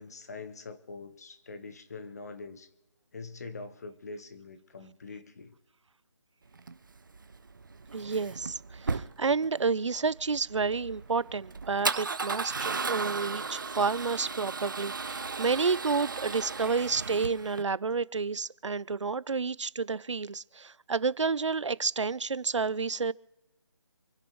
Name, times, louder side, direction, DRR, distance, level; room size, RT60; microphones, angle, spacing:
voice 1, 0.0-2.7 3.1-5.6, left 3 dB, 35° left, 10 dB, 1.2 m, -44 dB
Male speech man speaking / Car / Engine starting, 6.5-17.6, right 4 dB, 45° right, 0.7 m, -36 dB
voice 2, 7.9-23.1, right 4 dB, 85° right, 21 dB, 0.6 m, -30 dB
28.0 x 10.5 x 3.1 m, 0.99 s
figure-of-eight pair, 175°, 15 cm